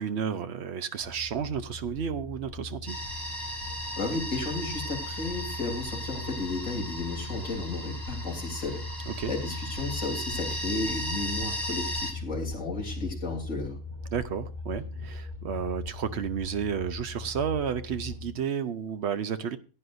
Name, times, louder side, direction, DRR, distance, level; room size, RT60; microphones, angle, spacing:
voice 1, 0.0-3.0 9.1-9.3 14.1-19.6, right 7 dB, 55° right, 11 dB, 1.0 m, -32 dB
sound 1, 1.0-18.3, left 2 dB, 70° right, 7.8 m, -39 dB
sound 2, 2.9-12.1, equal, 15° right, 1.5 m, -36 dB
voice 2, 3.9-8.8 9.3-13.8, left 3 dB, 65° left, -1 dB, 3.6 m, -33 dB
16.5 x 9.6 x 2.6 m, 0.34 s
omnidirectional pair, 1.5 m